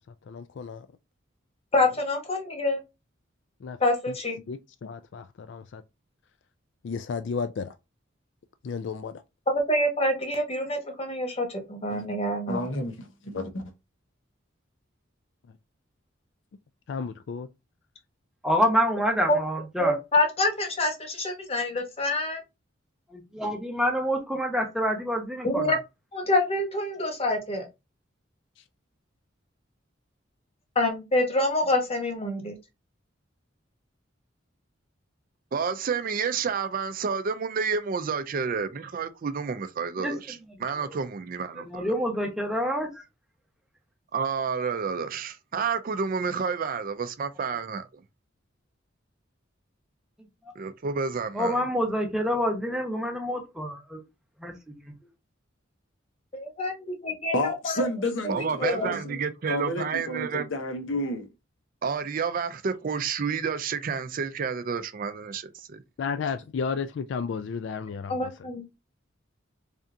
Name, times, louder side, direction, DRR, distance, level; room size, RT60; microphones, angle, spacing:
voice 1, 0.3-0.9 3.6-3.8 4.1-4.2 4.5-5.8 6.8-7.8 8.6-9.2 16.9-17.5 28.6-28.7 66.0-68.3, left 5 dB, 65° left, 0.3 m, -33 dB
voice 2, 1.7-2.8 3.8-4.4 9.5-12.7 19.3-19.4 19.8-22.4 25.4-25.8 26.1-27.6 30.7-32.5 56.3-56.7 57.0-57.8 58.2-58.3 58.6-59.0 68.1-68.6, left 1 dB, 30° left, 1.0 m, -26 dB
voice 3, 12.5-13.6 57.3-59.2 59.5-61.3, left 1 dB, 80° left, 0.9 m, -31 dB
voice 4, 18.4-19.9 23.1-25.7 40.0-40.1 40.8-41.0 41.6-43.0 51.3-54.0 54.4-54.5, equal, 5° right, 0.9 m, -27 dB
voice 5, 35.5-42.0 44.1-48.0 50.6-51.6 58.3-60.5 61.8-65.8, right 5 dB, 45° right, 0.4 m, -30 dB
3.4 x 2.7 x 3.6 m
head